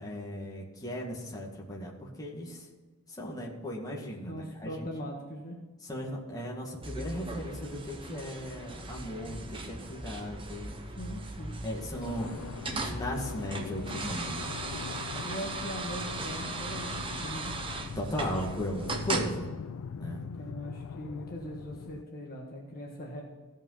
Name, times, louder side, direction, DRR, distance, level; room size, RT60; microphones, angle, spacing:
voice 1, 0.0-2.6 3.1-4.9 5.8-10.7 11.6-14.4 18.0-19.5 20.0-20.2, equal, 15° left, -3 dB, 2.0 m, -37 dB
voice 2, 4.3-5.6 10.9-11.6 15.2-17.5 20.3-23.2, equal, 40° left, -1 dB, 1.5 m, -40 dB
sound 1, 6.8-19.3, right 3 dB, 25° right, 1.0 m, -38 dB
sound 2, 12.0-22.0, left 6 dB, 70° left, 0.4 m, -42 dB
15.5 x 5.5 x 5.7 m, 1.3 s
head